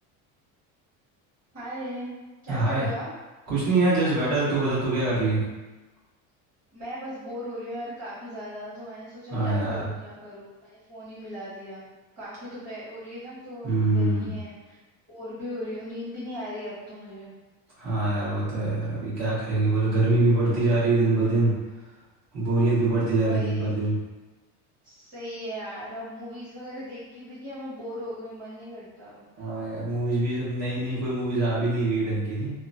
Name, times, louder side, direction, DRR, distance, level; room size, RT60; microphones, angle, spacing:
voice 1, 1.5-2.1 2.4-3.1 6.7-11.8 12.1-14.8 15.1-17.3 23.2-23.7 24.8-29.2, equal, 20° right, -16 dB, 1.4 m, -38 dB
voice 2, 2.5-2.9 3.5-5.4 9.3-9.9 13.6-14.3 17.8-21.5 22.3-24.0 29.4-32.5, right 2 dB, 45° right, -9 dB, 1.3 m, -24 dB
2.9 x 2.2 x 2.6 m, 1.2 s
cardioid pair, 175°, 38 cm